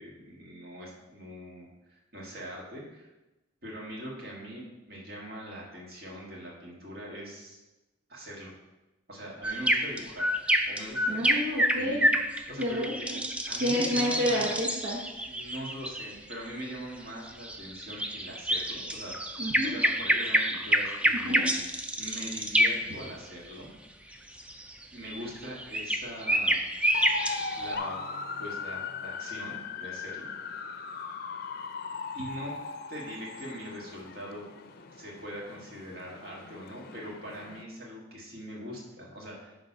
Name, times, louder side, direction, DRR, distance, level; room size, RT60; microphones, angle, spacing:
voice 1, 0.0-3.1 3.6-7.6 8.1-8.5 9.1-10.3 10.7-11.3 11.7-12.1 12.5-13.1 13.5-14.5 15.3-19.1 19.6-21.6 22.0-23.7 24.9-26.6 27.5-28.0 28.4-30.3 32.1-32.5 32.9-34.5 34.9-39.5, equal, 50° right, -3 dB, 1.8 m, -42 dB
sound 1, 9.4-16.3 17.3-23.1 24.1-27.7, equal, 5° right, 0.3 m, -28 dB
voice 2, 11.1-12.1 12.6-13.2 13.6-15.0 19.4-19.7 21.1-21.5, equal, 75° right, -4 dB, 1.1 m, -29 dB
sound 2, 26.9-37.6, left 4 dB, 50° left, 0.5 m, -39 dB
9.1 x 3.4 x 5.5 m, 1.0 s
head